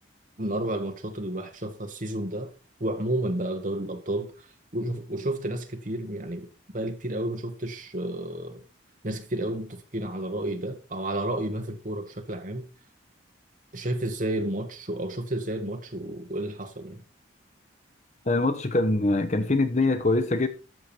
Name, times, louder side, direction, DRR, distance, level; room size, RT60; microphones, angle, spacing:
voice 1, 0.4-2.5 2.8-4.5 4.7-6.5 6.7-8.6 9.0-12.7 13.7-17.0, right 1 dB, 40° right, 1.5 m, -31 dB
voice 2, 18.3-20.5, left 2 dB, 35° left, 0.9 m, -23 dB
12.5 x 7.0 x 4.5 m
head